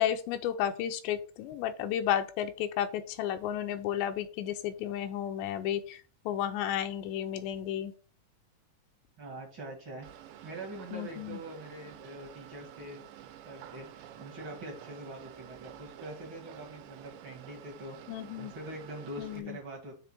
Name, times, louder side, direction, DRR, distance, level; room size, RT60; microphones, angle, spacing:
voice 1, 0.0-7.9 10.9-11.4 18.1-18.5 19.2-19.6, left 10 dB, 85° left, 7 dB, 2.8 m, -32 dB
voice 2, 9.2-13.0 13.4-18.0 18.4-19.9, right 1 dB, 60° right, 0 dB, 1.3 m, -44 dB
sound 1, 10.0-19.4, right 11 dB, 85° right, 2.9 m, -50 dB
7.1 x 3.4 x 5.9 m, 0.38 s
omnidirectional pair, 5.0 m